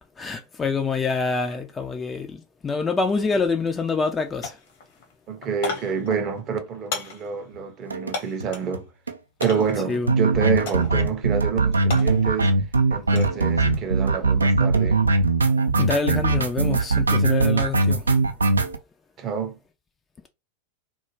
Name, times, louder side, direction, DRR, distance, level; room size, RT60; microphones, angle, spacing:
voice 1, 0.2-4.6 9.9-10.1 15.8-18.1, left 4 dB, 15° left, 0.3 m, -26 dB
sound 1, 3.2-3.3 3.7-4.2 4.4-8.7 9.4-9.9 10.7-11.1 11.4-13.4 13.7-14.2, left 4 dB, 50° left, 0.8 m, -36 dB
voice 2, 5.3-8.9 9.4-12.6 12.9-15.0 19.2-19.6, right 6 dB, 35° right, 0.6 m, -27 dB
sound 2, 7.9-8.1 8.4-8.5 8.7-8.8 9.1-9.2 9.4-18.8, right 3 dB, 80° right, 0.3 m, -21 dB
2.2 x 2.1 x 2.9 m
figure-of-eight pair, 90°, 0 cm